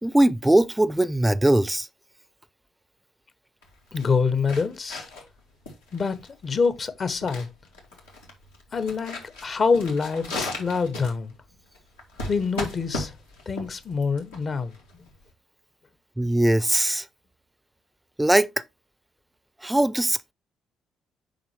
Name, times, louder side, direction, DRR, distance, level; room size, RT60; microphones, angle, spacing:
voice 1, 0.0-1.9 16.2-17.1 18.2-18.6 19.6-20.3, right 1 dB, 10° right, 0.5 m, -21 dB
sound 1, 3.6-15.3, left 2 dB, 85° left, 2.0 m, -37 dB
voice 2, 3.9-5.0 5.9-7.5 8.7-11.3 12.3-13.1 13.5-14.7, left 5 dB, 40° left, 1.0 m, -26 dB
7.7 x 5.5 x 3.2 m
figure-of-eight pair, 45°, 0 cm